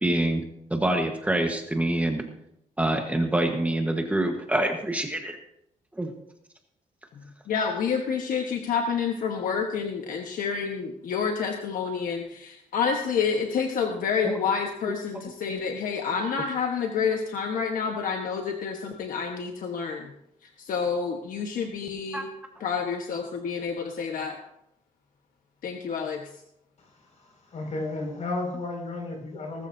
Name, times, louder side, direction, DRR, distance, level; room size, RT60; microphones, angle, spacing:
voice 1, 0.0-0.4 0.7-2.2 2.8-5.4 6.0-6.1 14.2-14.4 22.1-22.2, right 1 dB, 10° right, 3 dB, 1.3 m, -25 dB
voice 2, 7.5-20.1 20.6-22.3 22.6-24.4 25.6-26.2, left 6 dB, 75° left, 3 dB, 1.3 m, -28 dB
voice 3, 26.8-29.7, left 2 dB, 55° left, 0 dB, 5.9 m, -34 dB
19.0 x 13.0 x 2.8 m, 0.78 s
cardioid pair, 135°, 14 cm